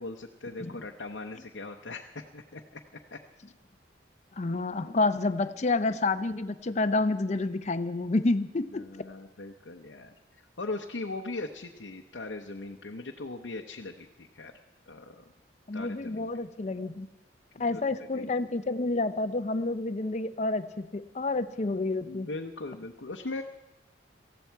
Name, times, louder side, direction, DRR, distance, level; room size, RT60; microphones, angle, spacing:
voice 1, 0.0-2.8 3.1-3.2 8.7-10.1 10.6-14.5 14.9-15.2 15.7-16.5 17.7-17.8 18.1-18.3 22.1-23.4, left 2 dB, 80° left, 2 dB, 0.8 m, -39 dB
voice 2, 4.4-8.8 15.7-17.1 17.6-22.3, left 3 dB, 40° left, 10 dB, 0.6 m, -29 dB
19.0 x 14.5 x 4.6 m, 1.0 s
head